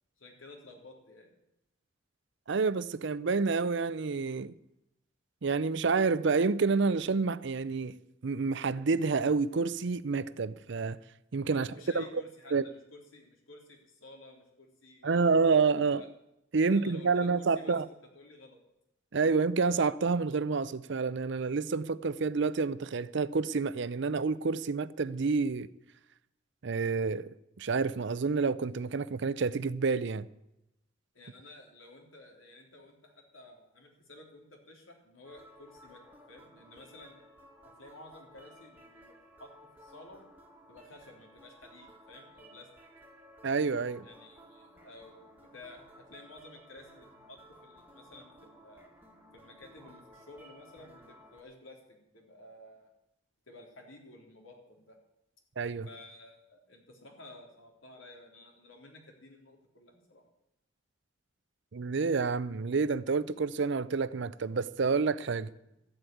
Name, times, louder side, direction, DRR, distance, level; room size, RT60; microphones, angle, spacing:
voice 1, 0.2-1.3 11.5-15.5 15.8-16.1 16.7-17.8 18.1-18.6 31.1-36.0 36.3-37.2 37.6-39.1 39.4-39.5 39.8-40.2 40.7-42.7 44.0-48.9 49.3-52.9 53.5-55.0 55.8-60.2, left 2 dB, 85° left, 3.3 m, -53 dB
voice 2, 2.5-4.5 5.4-11.0 11.3-11.7 11.9-12.2 12.5-12.6 15.0-16.0 16.5-17.9 19.1-25.7 26.6-27.3 27.6-30.3 43.4-44.1 55.6-55.9 61.7-65.5, right 4 dB, 60° right, 0.5 m, -28 dB
sound 1, 35.2-51.4, equal, 10° right, 1.7 m, -56 dB
13.0 x 7.9 x 9.2 m
head